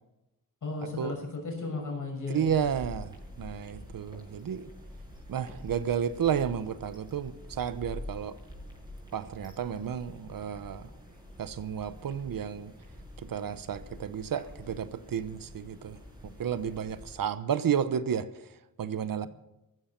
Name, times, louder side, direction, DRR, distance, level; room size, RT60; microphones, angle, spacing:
voice 1, 0.6-2.5, left 3 dB, 60° left, 2 dB, 6.5 m, -35 dB
voice 2, 2.3-3.1 3.4-4.7 5.3-8.3 9.1-10.8 11.4-12.7 13.2-16.0 16.2-18.3 18.8-19.3, right 8 dB, 75° right, 13 dB, 1.0 m, -32 dB
sound 1, 2.4-17.1, left 1 dB, 10° right, 5.9 m, -47 dB
15.5 x 14.5 x 5.9 m, 0.93 s
wide cardioid pair, 140°, 35 cm